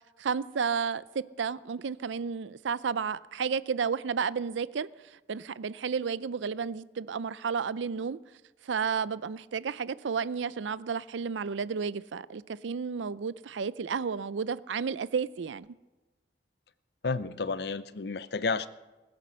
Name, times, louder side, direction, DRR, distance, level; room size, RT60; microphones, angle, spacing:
voice 1, 0.2-8.2 8.6-15.7, right 6 dB, 85° right, 0.5 m, -32 dB
voice 2, 17.0-18.7, left 4 dB, 60° left, 0.6 m, -31 dB
20.0 x 9.5 x 6.3 m
head